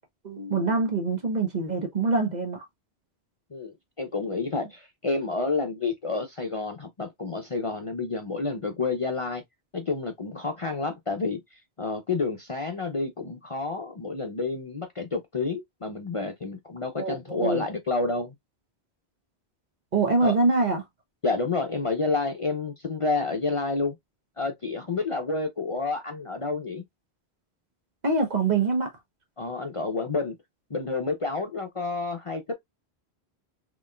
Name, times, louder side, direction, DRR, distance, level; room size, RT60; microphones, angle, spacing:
voice 1, 0.2-2.7 17.0-17.6 19.9-20.8 28.0-28.9, right 3 dB, 45° right, 1.1 m, -24 dB
voice 2, 3.5-9.4 9.7-18.3 20.2-20.3 21.2-24.0 24.4-26.8 29.4-30.4 30.7-32.5, left 3 dB, 40° left, 0.6 m, -29 dB
4.0 x 3.0 x 2.4 m
omnidirectional pair, 1.1 m